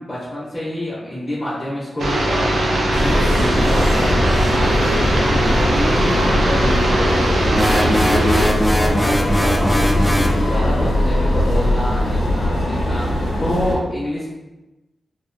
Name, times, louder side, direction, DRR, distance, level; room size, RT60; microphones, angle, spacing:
voice 1, 0.0-14.3, left 1 dB, 30° left, -7 dB, 0.8 m, -27 dB
sound 1, 2.0-8.5, right 1 dB, 80° right, 0.5 m, -20 dB
sound 2, 2.9-13.8, left 1 dB, 75° left, 0.6 m, -20 dB
sound 3, 7.5-10.4, equal, 10° left, 0.3 m, -20 dB
2.5 x 2.1 x 2.5 m, 1.1 s
cardioid pair, 75°, 0 cm